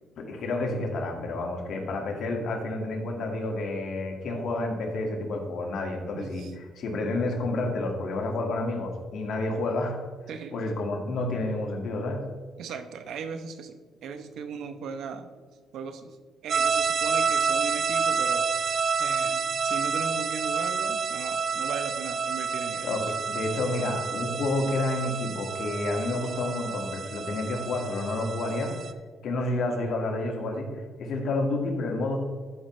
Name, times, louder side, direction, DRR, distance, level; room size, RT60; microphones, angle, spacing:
voice 1, 0.2-6.5 6.8-10.0 10.5-12.2 22.8-28.7 29.2-30.7 31.0-32.2, left 2 dB, 65° left, 1 dB, 1.9 m, -29 dB
voice 2, 6.1-6.5 10.3-10.6 12.6-15.3 15.7-16.2 16.4-23.1, right 5 dB, 75° right, 9 dB, 0.8 m, -38 dB
sound 1, 16.5-28.9, right 5 dB, 50° right, 0.5 m, -29 dB
13.0 x 5.9 x 3.2 m, 1.6 s
cardioid pair, 90°, 0 cm